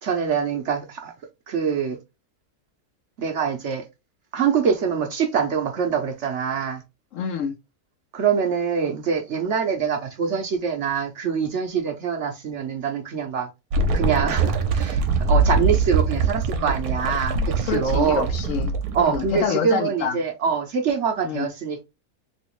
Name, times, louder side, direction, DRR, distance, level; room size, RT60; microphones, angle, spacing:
voice 1, 0.0-1.1 1.5-2.0 3.2-3.8 4.3-6.8 8.1-13.5 13.9-18.3 18.9-21.9, right 6 dB, 60° right, 0.9 m, -24 dB
voice 2, 7.1-7.5 17.6-20.2 21.2-21.5, left 6 dB, 70° left, 0.8 m, -27 dB
sound 1, 13.7-19.4, right 4 dB, 80° right, 1.2 m, -23 dB
3.1 x 2.9 x 3.0 m
omnidirectional pair, 1.6 m